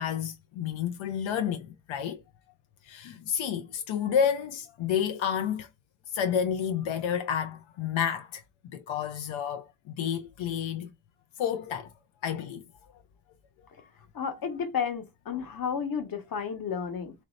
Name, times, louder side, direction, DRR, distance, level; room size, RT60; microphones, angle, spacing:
voice 1, 0.0-2.2 2.8-5.7 6.1-10.9 11.4-11.9 12.2-12.7, left 8 dB, 85° left, 0.6 m, -30 dB
voice 2, 14.1-17.1, left 6 dB, 50° left, 1.1 m, -32 dB
3.1 x 2.7 x 3.9 m
wide cardioid pair, 160°, 45 cm